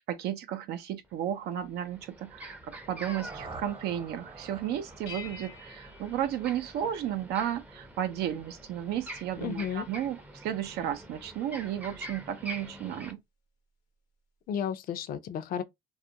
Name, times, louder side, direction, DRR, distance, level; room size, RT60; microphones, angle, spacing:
voice 1, 0.1-13.2, right 10 dB, 80° right, 0.5 m, -33 dB
sound 1, 1.0-1.1 1.5-13.1, right 1 dB, 10° right, 0.5 m, -46 dB
sound 2, 2.7-6.7, right 3 dB, 30° right, 0.8 m, -48 dB
sound 3, 5.1-7.3, left 5 dB, 90° left, 0.8 m, -48 dB
voice 2, 9.4-9.9 14.5-15.6, left 8 dB, 60° left, 0.4 m, -33 dB
2.3 x 2.1 x 2.7 m
cardioid pair, 110°, 17 cm